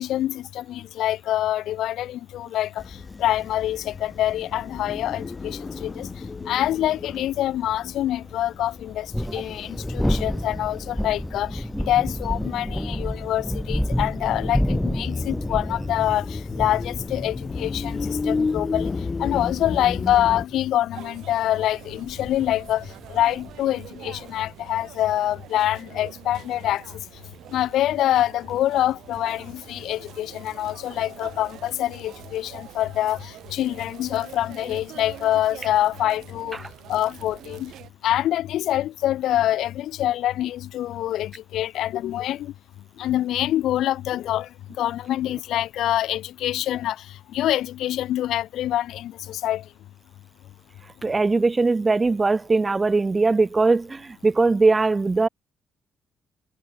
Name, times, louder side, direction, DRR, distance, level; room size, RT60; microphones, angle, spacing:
voice 1, 0.0-2.7 3.2-6.1 6.5-9.1 9.3-18.9 19.2-22.8 23.1-26.8 27.5-36.6 36.9-37.7 38.0-42.5 43.0-44.5 44.8-47.0 47.3-49.6, left 13 dB, 80° left, 0.7 m, -25 dB
sound 1, 2.8-20.5, left 4 dB, 30° left, 1.3 m, -34 dB
sound 2, 6.7-6.8 8.9-24.5, equal, 5° left, 1.4 m, -30 dB
sound 3, 20.9-37.9, right 13 dB, 80° right, 7.5 m, -45 dB
voice 2, 51.0-55.3, right 3 dB, 25° right, 0.7 m, -20 dB
cardioid pair, 90°, 0 cm